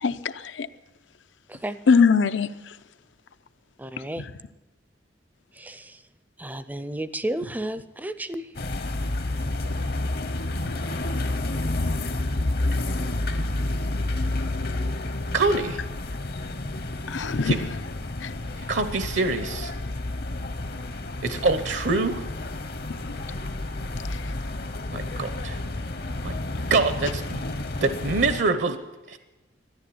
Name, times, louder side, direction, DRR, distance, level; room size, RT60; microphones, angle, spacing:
voice 1, 0.0-0.7 1.9-2.8 4.2-4.3 9.7-9.8 17.1-17.5 18.2-18.4 22.9-23.2 23.9-24.3, left 5 dB, 90° left, 12 dB, 0.6 m, -23 dB
voice 2, 3.8-4.2 5.6-5.9 6.4-8.4, right 1 dB, 10° right, 13 dB, 0.4 m, -32 dB
sound 1, 8.6-28.4, left 2 dB, 55° left, 0.8 m, -30 dB
voice 3, 15.3-15.8 17.5-17.6 18.6-19.7 21.2-22.2 24.9-25.6 26.2-26.4 26.7-27.5 27.8-28.8 29.1-29.2, right 3 dB, 75° right, 10 dB, 0.8 m, -25 dB
13.0 x 11.0 x 8.6 m, 1.1 s
head